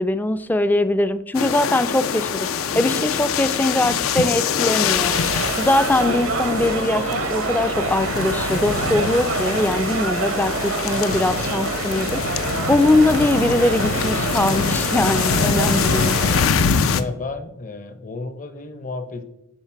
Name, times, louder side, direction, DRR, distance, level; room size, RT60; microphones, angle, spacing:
voice 1, 0.0-5.2 5.6-12.4 12.7-16.2, left 2 dB, 10° left, 12 dB, 0.3 m, -21 dB
sound 1, 1.3-17.0, left 6 dB, 80° left, 0.5 m, -24 dB
sound 2, 2.7-9.2, equal, 65° left, 2.3 m, -39 dB
sound 3, 5.1-16.4, right 4 dB, 70° right, 0.7 m, -27 dB
voice 2, 16.9-19.2, left 3 dB, 40° left, 10 dB, 0.7 m, -32 dB
10.5 x 4.0 x 4.5 m, 0.86 s
head